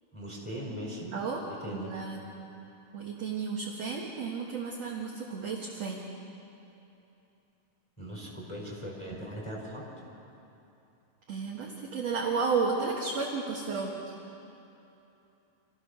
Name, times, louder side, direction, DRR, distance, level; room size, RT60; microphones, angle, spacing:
voice 1, 0.1-1.1 1.6-1.9 8.0-9.8, equal, 5° left, -3 dB, 4.7 m, -39 dB
voice 2, 1.1-1.4 1.7-2.2 2.9-6.0 11.3-14.1, right 4 dB, 50° right, -3 dB, 2.2 m, -32 dB
27.0 x 15.5 x 6.7 m, 2.9 s
omnidirectional pair, 4.8 m